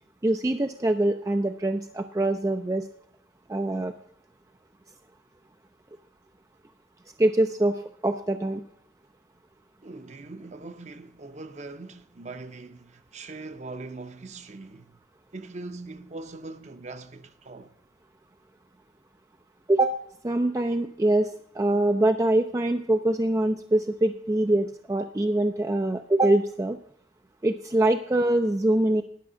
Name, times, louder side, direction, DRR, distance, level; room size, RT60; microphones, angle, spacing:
voice 1, 0.2-2.9 3.5-3.9 7.2-8.6 19.7-19.9 20.2-26.8 27.4-29.0, right 1 dB, 15° right, 0.4 m, -24 dB
voice 2, 9.8-15.0 15.3-17.7, right 3 dB, 40° right, 0.8 m, -41 dB
11.0 x 6.0 x 7.2 m
head